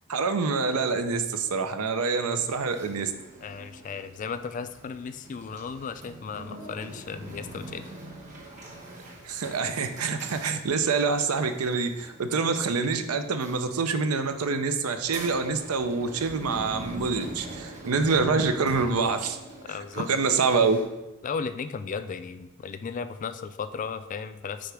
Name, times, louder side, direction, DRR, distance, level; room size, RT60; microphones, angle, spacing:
voice 1, 0.1-3.1 9.2-19.4 20.0-20.8, right 4 dB, 85° right, 8 dB, 0.6 m, -26 dB
sound 1, 2.4-20.8, right 1 dB, 35° right, 1.5 m, -44 dB
voice 2, 3.4-7.9 19.6-20.1 21.2-24.7, left 5 dB, 35° left, 11 dB, 0.3 m, -35 dB
9.3 x 3.8 x 3.4 m, 1.0 s
head